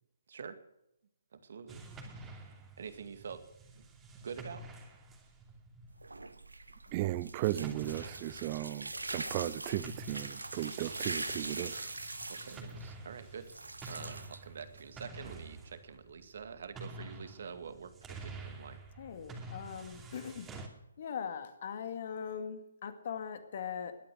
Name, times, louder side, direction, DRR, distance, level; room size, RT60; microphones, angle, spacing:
voice 1, 1.3-1.8 2.2-2.3 2.8-3.4 3.7-3.8 4.2-4.6 12.3-13.5 13.8-18.8, right 6 dB, 55° right, 2.1 m, -46 dB
sound 1, 1.7-7.3 7.6-20.7, right 2 dB, 10° right, 2.6 m, -49 dB
sound 2, 5.9-15.0, right 2 dB, 90° right, 1.1 m, -42 dB
voice 2, 6.9-11.9, right 14 dB, 30° right, 0.9 m, -36 dB
voice 3, 19.0-20.5 21.0-24.0, left 7 dB, 50° left, 2.1 m, -40 dB
21.0 x 8.8 x 7.7 m
figure-of-eight pair, 145°, 0 cm